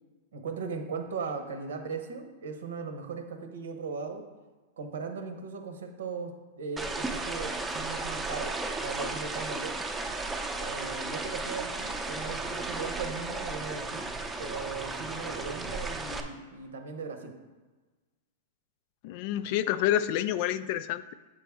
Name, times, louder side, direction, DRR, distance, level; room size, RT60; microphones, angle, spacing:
voice 1, 0.3-4.2 4.8-8.5 8.8-9.7 10.6-14.0 14.4-17.3, right 5 dB, 85° right, 6 dB, 1.0 m, -38 dB
sound 1, 6.8-16.2, right 2 dB, 10° right, 0.6 m, -34 dB
voice 2, 19.0-21.1, left 12 dB, 50° left, 15 dB, 0.3 m, -28 dB
7.5 x 5.1 x 3.5 m, 1.3 s
hypercardioid pair, 130°, 0 cm